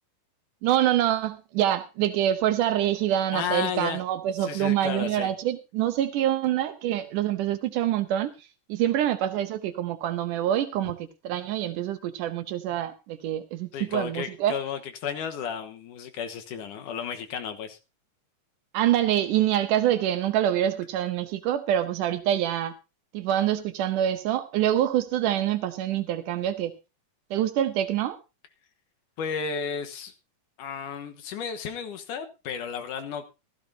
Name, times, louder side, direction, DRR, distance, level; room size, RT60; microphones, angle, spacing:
voice 1, 0.6-14.6 18.7-22.7 23.1-26.7 27.3-28.2, right 11 dB, 80° right, 9 dB, 2.4 m, -26 dB
voice 2, 3.3-4.0 4.4-5.3 13.7-17.8 29.2-30.1 30.6-33.3, left 7 dB, 80° left, 7 dB, 2.7 m, -33 dB
15.5 x 14.5 x 2.8 m, 0.28 s
omnidirectional pair, 3.6 m